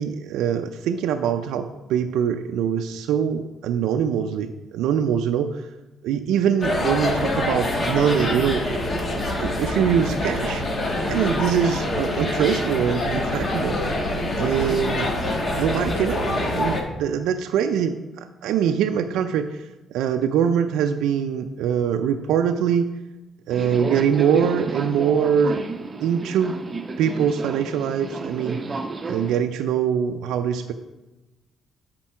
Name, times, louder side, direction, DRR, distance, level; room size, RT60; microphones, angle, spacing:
voice 1, 0.0-5.7 6.0-8.8 9.4-10.6 11.1-13.8 14.4-15.1 15.6-19.6 19.9-22.9 23.5-25.7 26.0-26.6 27.0-28.6 29.1-30.7, right 8 dB, 85° right, 6 dB, 0.4 m, -23 dB
sound 1, 6.6-16.8, left 1 dB, 40° left, 1.4 m, -25 dB
Subway metro underground, 23.5-29.4, right 3 dB, 30° right, 0.6 m, -32 dB
7.4 x 4.4 x 5.7 m, 1.1 s
cardioid pair, 85°, 0 cm